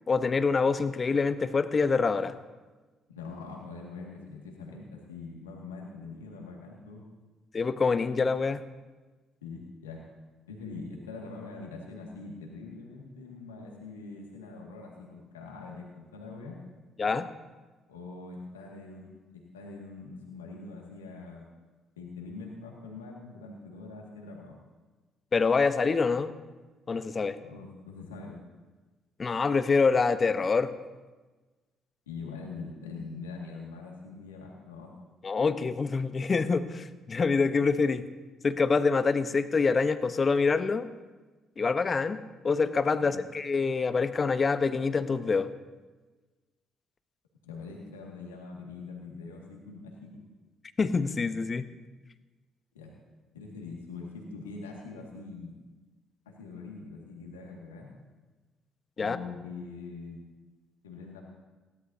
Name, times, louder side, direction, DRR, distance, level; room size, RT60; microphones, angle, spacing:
voice 1, 0.1-2.3 7.5-8.6 17.0-17.3 25.3-26.4 26.9-27.4 29.2-30.7 35.2-38.0 38.4-40.9 41.6-45.5 50.8-51.6 59.0-59.2, left 4 dB, 35° left, 12 dB, 0.9 m, -26 dB
voice 2, 3.1-7.1 9.4-10.1 10.5-16.6 17.9-21.5 22.0-24.6 27.4-28.4 32.1-34.9 43.0-43.2 47.4-50.2 52.7-52.9 53.3-55.5 56.3-57.9 59.0-60.2 60.8-61.2, left 4 dB, 85° left, -1 dB, 2.0 m, -43 dB
20.5 x 16.5 x 2.8 m, 1.3 s
figure-of-eight pair, 45°, 0 cm